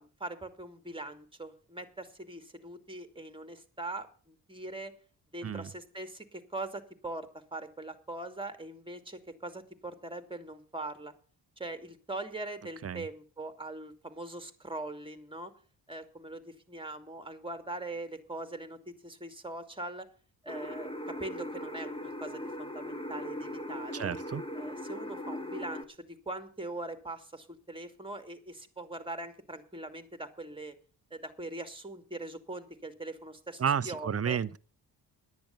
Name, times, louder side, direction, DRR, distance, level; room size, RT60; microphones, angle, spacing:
voice 1, 0.0-4.9 5.3-11.1 11.6-15.5 15.9-20.1 20.4-24.1 24.5-30.8 31.1-34.4, right 2 dB, 10° right, 2.5 m, -42 dB
sound 1, 20.5-25.8, left 1 dB, 10° left, 2.0 m, -39 dB
voice 2, 23.9-24.4 33.6-34.6, right 7 dB, 30° right, 0.8 m, -31 dB
10.0 x 9.5 x 7.0 m
hypercardioid pair, 40°, 49 cm